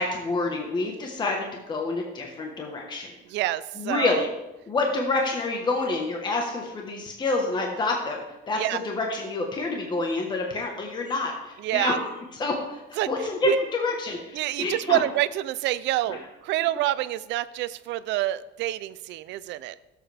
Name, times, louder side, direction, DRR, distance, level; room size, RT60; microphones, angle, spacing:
voice 1, 0.0-3.1 3.8-4.3 4.7-15.0 16.1-16.2, left 3 dB, 20° left, 1 dB, 1.3 m, -28 dB
voice 2, 3.3-4.3 8.6-8.8 11.6-12.0 13.0-13.1 13.4-13.6 14.3-19.7, right 14 dB, 65° right, 15 dB, 0.5 m, -27 dB
16.0 x 7.9 x 3.4 m, 1.0 s
cardioid pair, 160°, 20 cm